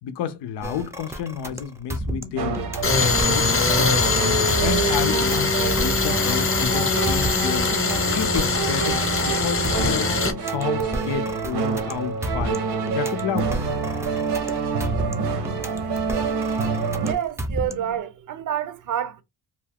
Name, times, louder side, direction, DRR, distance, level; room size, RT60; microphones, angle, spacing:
voice 1, 0.0-2.6 2.9-3.9 4.6-7.7 8.1-12.6 12.9-13.6 15.0-15.2, left 8 dB, 80° left, 0.6 m, -31 dB
sound 1, 0.6-18.0, right 1 dB, 5° right, 0.5 m, -33 dB
sound 2, 2.4-17.1, right 5 dB, 70° right, 0.9 m, -28 dB
Tools, 2.8-10.3, left 3 dB, 30° left, 0.9 m, -22 dB
voice 2, 17.0-19.2, right 10 dB, 50° right, 0.6 m, -28 dB
2.6 x 2.3 x 3.4 m
cardioid pair, 110°, 40 cm